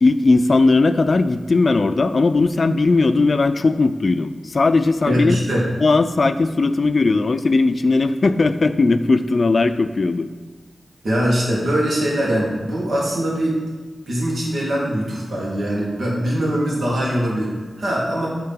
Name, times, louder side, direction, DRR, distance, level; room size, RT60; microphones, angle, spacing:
voice 1, 0.0-5.4 5.8-10.3, left 3 dB, 55° left, 11 dB, 0.4 m, -18 dB
voice 2, 5.1-5.7 11.0-13.6 14.1-18.3, equal, 75° right, -5 dB, 2.2 m, -22 dB
6.7 x 3.7 x 5.6 m, 1.4 s
wide cardioid pair, 65°, 0 cm